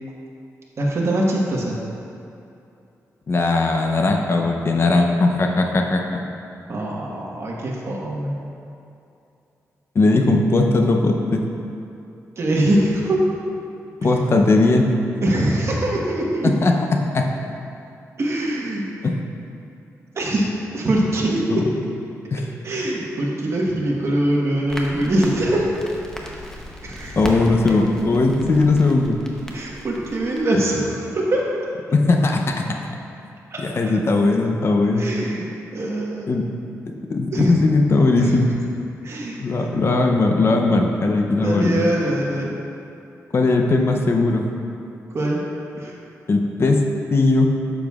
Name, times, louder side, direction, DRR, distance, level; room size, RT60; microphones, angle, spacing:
voice 1, 0.8-1.8 6.7-8.3 12.4-13.2 14.0-14.1 15.2-16.6 18.2-18.9 20.1-21.6 22.6-25.7 26.8-27.2 27.7-27.8 29.5-31.4 33.5-33.6 35.0-36.3 37.3-37.6 38.2-38.3 39.0-39.7 41.4-42.6 45.1-45.4 45.8-45.9, right 1 dB, 50° right, -3 dB, 1.3 m, -23 dB
voice 2, 3.3-6.2 9.9-11.4 14.0-14.9 16.4-16.7 17.1-17.3 19.0-19.1 21.5-21.7 22.3-22.4 27.2-29.2 31.9-32.6 33.6-35.1 36.3-36.5 37.1-38.5 39.4-41.9 43.3-44.4 46.3-46.8 47.1-47.5, left 3 dB, 45° left, 2 dB, 0.6 m, -18 dB
Crackle, 24.7-30.4, equal, 10° left, 0.8 m, -35 dB
9.0 x 7.0 x 2.4 m, 2.7 s
cardioid pair, 100°, 6 cm